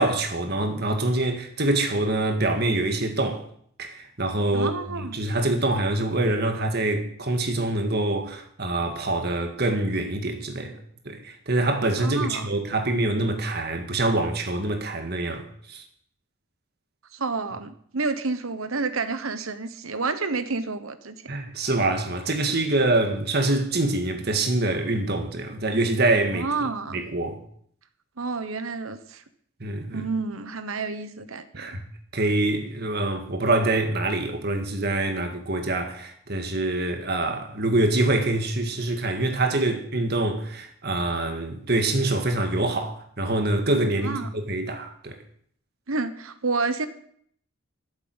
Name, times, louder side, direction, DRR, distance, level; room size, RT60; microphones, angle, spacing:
voice 1, 0.0-3.4 3.8-10.8 11.1-15.8 21.3-27.4 29.6-30.0 31.5-31.8 32.1-45.2, right 2 dB, 50° right, 1.9 m, -25 dB
voice 2, 4.5-5.2 12.0-12.5 17.1-21.2 26.3-27.0 28.2-29.2 29.9-31.7 44.0-44.3 45.9-46.9, right 4 dB, 85° right, 1.2 m, -29 dB
13.0 x 7.7 x 7.9 m
head